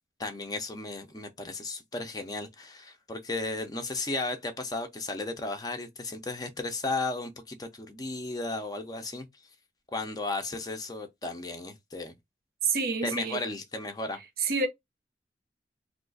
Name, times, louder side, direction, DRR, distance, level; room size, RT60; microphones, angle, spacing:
voice 1, 0.2-9.3 9.9-12.2 13.0-14.2, left 2 dB, 20° left, 0.5 m, -34 dB
voice 2, 12.6-13.4 14.4-14.7, right 4 dB, 60° right, 0.6 m, -28 dB
2.7 x 2.3 x 3.9 m
head